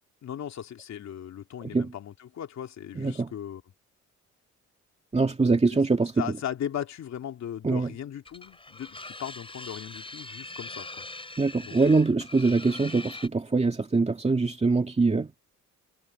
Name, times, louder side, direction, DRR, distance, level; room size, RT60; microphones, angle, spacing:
voice 1, 0.2-3.6 5.7-5.8 6.2-11.0 11.6-12.1, left 10 dB, 65° left, 2.7 m, -37 dB
voice 2, 3.0-3.3 5.1-6.2 7.6-7.9 11.4-15.3, right 3 dB, 20° right, 2.3 m, -23 dB
sound 1, 8.3-13.3, left 2 dB, 20° left, 6.9 m, -42 dB
cardioid pair, 90°, 30 cm